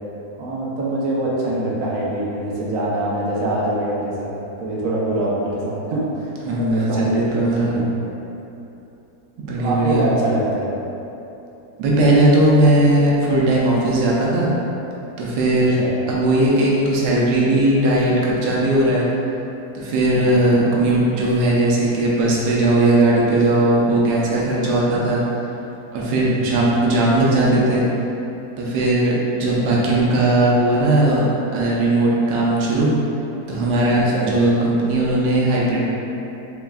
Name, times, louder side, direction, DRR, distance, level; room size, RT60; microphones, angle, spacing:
voice 1, 0.4-8.1 9.6-10.7 15.8-15.9 20.1-20.5 26.3-26.6 29.6-29.8 33.9-34.3, right 1 dB, 65° right, -5 dB, 1.1 m, -24 dB
voice 2, 6.4-7.8 9.4-10.0 11.8-14.5 15.2-15.7 16.1-19.1 19.7-25.2 25.9-27.8 28.6-31.2 31.5-32.9 33.5-35.8, right 1 dB, 85° right, -5 dB, 1.2 m, -18 dB
4.4 x 3.3 x 2.3 m, 2.9 s
omnidirectional pair, 1.7 m